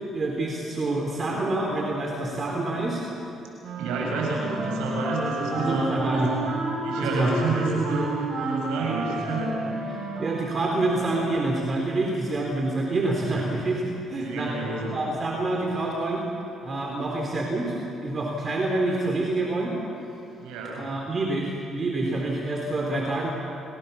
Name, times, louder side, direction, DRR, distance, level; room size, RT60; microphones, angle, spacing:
voice 1, 0.1-3.0 5.6-6.3 7.0-7.3 10.2-13.8 14.1-14.5 14.8-16.2 16.6-19.8 20.8-23.3, right 2 dB, 40° right, 0 dB, 3.8 m, -27 dB
Wind instrument woodwind instrument, 3.6-11.1, right 2 dB, 65° right, 6.2 m, -31 dB
voice 2, 3.8-6.4 6.8-9.9 14.2-14.9 20.4-20.9, right 3 dB, 90° right, -2 dB, 7.7 m, -29 dB
30.0 x 18.0 x 7.1 m, 2.9 s
supercardioid pair, 75°, 0 cm